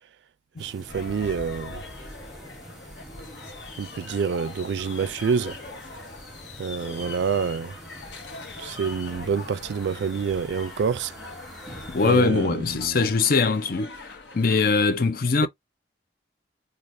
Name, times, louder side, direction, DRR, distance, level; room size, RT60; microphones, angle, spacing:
sound 1, 0.6-12.2, right 1 dB, ahead, 1.1 m, -46 dB
voice 1, 0.6-1.8 3.8-5.6 6.6-7.7 8.6-11.1 12.0-13.0, right 6 dB, 70° right, 0.3 m, -27 dB
sound 2, 0.9-14.9, left 3 dB, 65° left, 1.1 m, -42 dB
voice 2, 11.9-15.5, left 4 dB, 50° left, 0.6 m, -22 dB
4.7 x 2.4 x 2.6 m
head